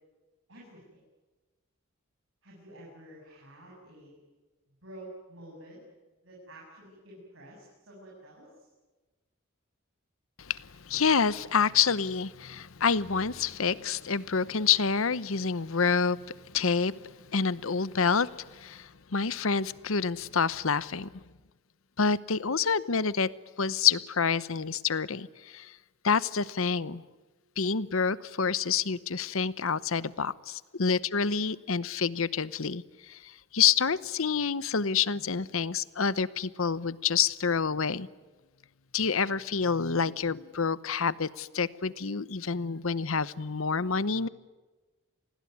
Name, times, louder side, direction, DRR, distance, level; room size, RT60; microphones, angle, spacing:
voice 1, 0.5-1.0 2.4-4.2 4.8-5.8 6.2-8.7, right 1 dB, 60° right, 7.9 m, -49 dB
voice 2, 10.4-21.1 22.0-23.3 23.6-25.8 26.0-27.0 27.6-38.1 38.9-44.3, left 6 dB, 70° left, 0.9 m, -28 dB
28.0 x 20.5 x 9.5 m
head